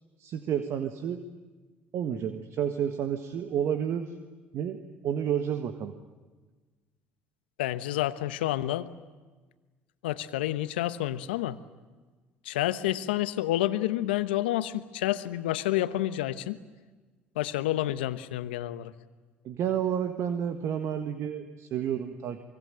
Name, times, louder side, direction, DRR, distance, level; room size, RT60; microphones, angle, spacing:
voice 1, 0.2-1.2 1.9-4.1 4.5-4.8 5.0-5.9 19.4-22.4, right 9 dB, 60° right, 8 dB, 1.7 m, -30 dB
voice 2, 7.6-8.9 10.0-11.6 12.4-16.6 17.4-18.9, left 14 dB, 85° left, 13 dB, 1.1 m, -29 dB
25.0 x 24.0 x 9.1 m, 1.3 s
hypercardioid pair, 65°, 5 cm